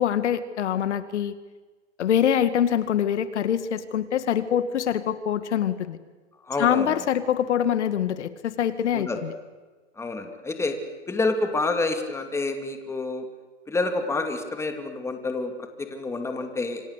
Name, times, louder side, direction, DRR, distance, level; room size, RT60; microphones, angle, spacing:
voice 1, 0.0-1.3 2.0-6.0 6.6-9.3, left 9 dB, 70° left, 12 dB, 2.0 m, -24 dB
voice 2, 6.5-6.9 8.9-9.2 10.0-10.8 11.1-13.3 13.7-16.8, left 3 dB, 5° left, 5 dB, 2.7 m, -28 dB
27.5 x 25.0 x 8.3 m, 1.3 s
hypercardioid pair, 135°, 36 cm